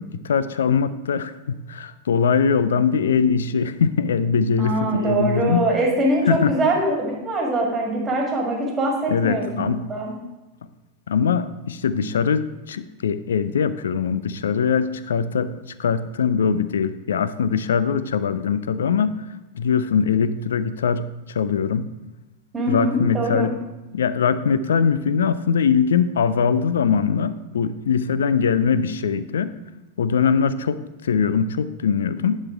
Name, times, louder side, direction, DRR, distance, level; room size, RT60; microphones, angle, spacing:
voice 1, 0.0-5.7 6.3-6.6 9.1-9.8 11.1-15.5 15.8-19.2 19.6-21.9 22.7-23.5 23.9-29.5 30.0-32.4, left 6 dB, 65° left, 14 dB, 0.4 m, -22 dB
voice 2, 4.6-9.4 9.9-10.1 22.5-23.5, right 1 dB, 15° right, -1 dB, 2.2 m, -23 dB
10.5 x 4.4 x 4.6 m, 1.0 s
figure-of-eight pair, 90°, 0 cm